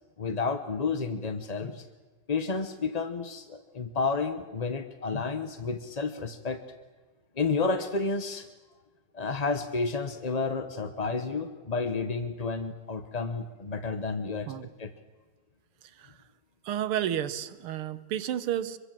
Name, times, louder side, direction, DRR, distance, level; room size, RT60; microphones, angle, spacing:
voice 1, 0.2-1.9 2.3-6.6 7.4-8.5 9.1-14.5 14.8-14.9, left 4 dB, 35° left, 9 dB, 0.6 m, -31 dB
voice 2, 16.6-18.8, right 10 dB, 90° right, 13 dB, 1.9 m, -31 dB
25.5 x 23.0 x 7.5 m, 1.3 s
omnidirectional pair, 2.3 m